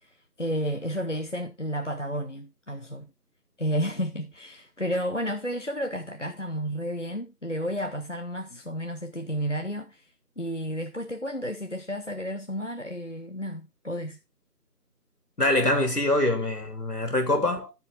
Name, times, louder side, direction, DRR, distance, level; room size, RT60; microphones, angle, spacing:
voice 1, 0.0-3.1 3.6-14.2, equal, 50° left, 0.7 m, -32 dB
voice 2, 15.4-17.7, left 1 dB, 65° left, 3.3 m, -24 dB
13.5 x 4.6 x 4.0 m
figure-of-eight pair, 175°, 49 cm